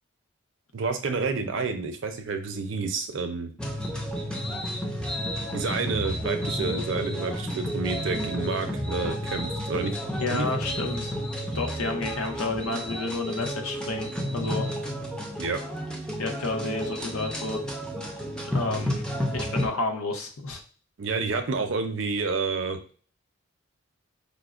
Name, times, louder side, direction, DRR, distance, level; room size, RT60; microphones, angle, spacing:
voice 1, 0.7-3.5 5.5-10.0 10.3-10.5 10.8-10.9 15.4-15.6 21.0-22.8, right 4 dB, 60° right, 7 dB, 0.5 m, -29 dB
sound 1, 3.6-19.7, equal, 5° left, 0.3 m, -31 dB
voice 2, 10.1-11.1 11.5-14.1 14.3-14.7 16.2-17.7 18.5-19.0 19.3-20.6, left 3 dB, 85° left, 4 dB, 0.7 m, -30 dB
5.0 x 2.0 x 2.4 m, 0.41 s
head